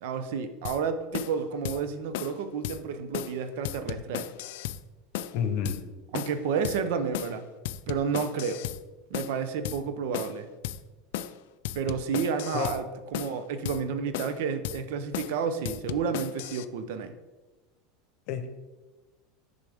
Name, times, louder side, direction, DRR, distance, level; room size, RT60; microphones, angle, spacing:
voice 1, 0.0-4.3 6.1-7.5 7.9-8.6 9.1-10.5 11.7-17.1, right 6 dB, 70° right, 10 dB, 0.6 m, -31 dB
sound 1, 0.6-0.8 1.1-1.4 1.6-1.8 2.1-2.4 2.6-2.8 3.1-3.4 3.6-4.8 5.1-5.4 5.6-5.8 6.1-6.4 6.6-6.8 7.1-7.4 7.6-8.8 9.1-9.4 9.6-9.8 10.1-10.4 10.6-10.8 11.1-11.4 11.6-12.8 13.1-13.4 13.6-13.8 14.1-14.4 14.6-14.8 15.1-15.4 15.6-16.6, left 12 dB, 75° left, 0.3 m, -35 dB
voice 2, 5.3-5.8 12.5-12.8 18.3-18.5, left 7 dB, 60° left, 8 dB, 0.8 m, -29 dB
6.9 x 5.2 x 3.5 m, 1.2 s
supercardioid pair, 130°, 0 cm